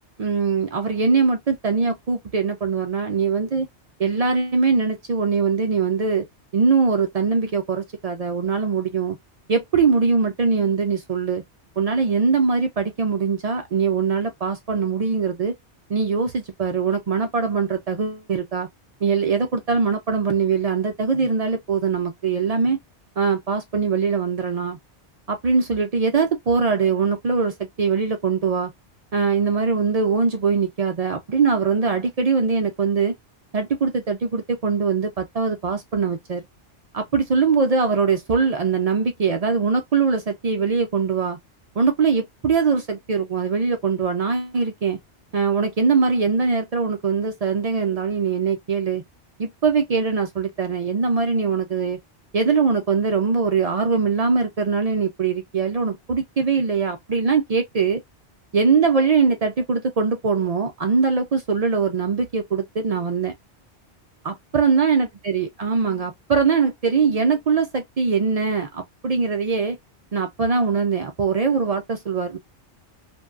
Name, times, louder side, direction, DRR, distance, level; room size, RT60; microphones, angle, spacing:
voice 1, 0.2-3.7 4.0-6.3 6.5-9.2 9.5-11.4 11.8-15.5 15.9-18.7 19.0-22.8 23.2-24.8 25.3-28.7 29.1-33.2 33.5-36.4 36.9-41.4 41.8-45.0 45.3-49.0 49.4-52.0 52.3-58.0 58.5-63.3 64.2-69.8 70.1-72.4, right 5 dB, 60° right, 0.4 m, -22 dB
2.6 x 2.2 x 2.3 m
omnidirectional pair, 1.2 m